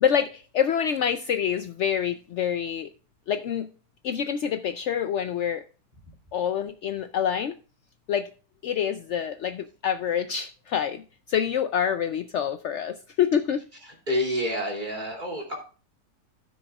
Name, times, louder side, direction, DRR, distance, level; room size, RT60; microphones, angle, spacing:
voice 1, 0.0-2.9 3.3-3.7 4.0-5.6 6.3-7.5 8.1-8.3 8.6-11.0 11.3-13.6, left 8 dB, 80° left, 9 dB, 0.6 m, -26 dB
voice 2, 14.1-15.6, equal, 30° right, -1 dB, 2.9 m, -28 dB
16.0 x 6.3 x 2.3 m, 0.37 s
omnidirectional pair, 1.8 m